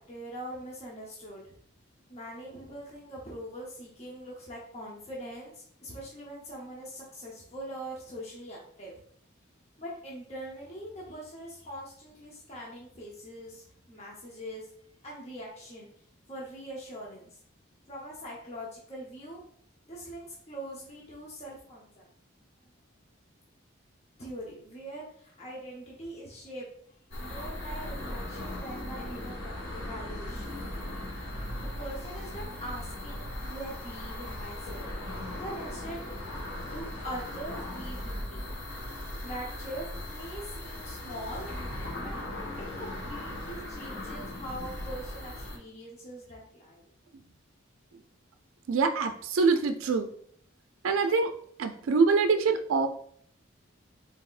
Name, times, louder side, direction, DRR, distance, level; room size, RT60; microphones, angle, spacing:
voice 1, 0.0-1.5 2.1-9.0 9.8-14.7 15.0-15.9 16.3-17.4 17.9-19.4 19.8-22.0 24.2-26.7 27.2-30.6 31.8-35.0 35.4-36.2 36.7-38.6 39.2-41.5 42.0-42.1 42.8-46.8, right 1 dB, 30° left, -3 dB, 0.8 m, -42 dB
sound 1, 27.1-45.6, left 1 dB, 60° left, 1.4 m, -38 dB
voice 2, 48.7-50.1 50.8-51.3 51.6-52.9, right 4 dB, 80° right, 7 dB, 0.4 m, -24 dB
4.1 x 4.1 x 2.4 m, 0.62 s
head